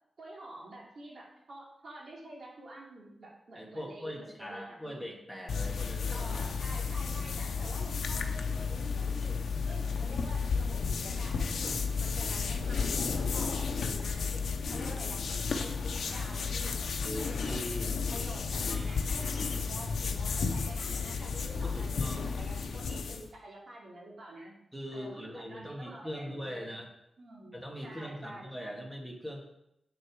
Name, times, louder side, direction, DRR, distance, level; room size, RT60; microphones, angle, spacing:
voice 1, 0.2-5.0 6.1-16.7 17.0-17.6 18.1-24.5 24.9-26.7 27.2-27.6 27.8-28.7, right 1 dB, 60° right, -3 dB, 2.9 m, -48 dB
voice 2, 3.5-6.3 17.0-17.9 18.5-18.9 19.4-19.7 21.6-22.3 24.7-26.9 27.5-29.4, equal, 5° right, 0 dB, 1.8 m, -41 dB
sound 1, 5.5-23.3, left 5 dB, 90° left, 0.8 m, -33 dB
8.1 x 6.6 x 4.8 m, 0.81 s
wide cardioid pair, 130°, 0 cm